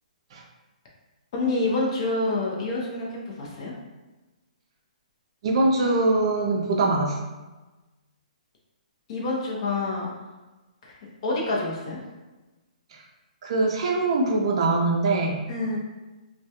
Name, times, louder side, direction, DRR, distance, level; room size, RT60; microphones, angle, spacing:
voice 1, 1.3-3.7 9.1-10.1 10.8-11.0 11.2-12.0 15.5-15.8, left 2 dB, 40° left, -3 dB, 0.6 m, -27 dB
voice 2, 5.4-7.2 13.4-15.4, right 2 dB, 45° right, 0 dB, 0.4 m, -22 dB
2.2 x 2.1 x 2.8 m, 1.1 s
hypercardioid pair, 160°, 4 cm